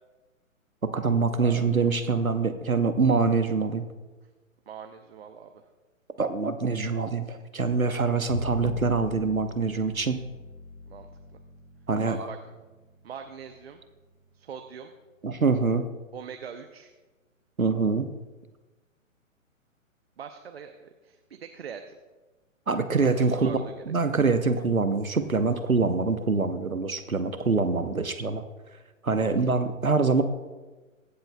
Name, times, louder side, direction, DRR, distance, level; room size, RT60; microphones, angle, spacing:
voice 1, 0.8-3.8 6.2-10.2 11.9-12.2 15.2-15.9 17.6-18.1 22.7-23.5 23.9-28.4 29.0-30.2, right 4 dB, 85° right, 9 dB, 1.0 m, -25 dB
voice 2, 1.4-1.7 4.7-5.6 10.9-11.1 11.3-11.4 12.0-12.4 13.0-13.8 14.3-14.9 16.1-16.9 20.2-22.0 23.0-23.8 29.2-29.5, right 7 dB, 50° right, 6 dB, 0.7 m, -42 dB
Bowed string instrument, 8.3-14.8, left 2 dB, 60° left, 3.8 m, -41 dB
23.0 x 7.8 x 2.3 m, 1.2 s
figure-of-eight pair, 125°, 41 cm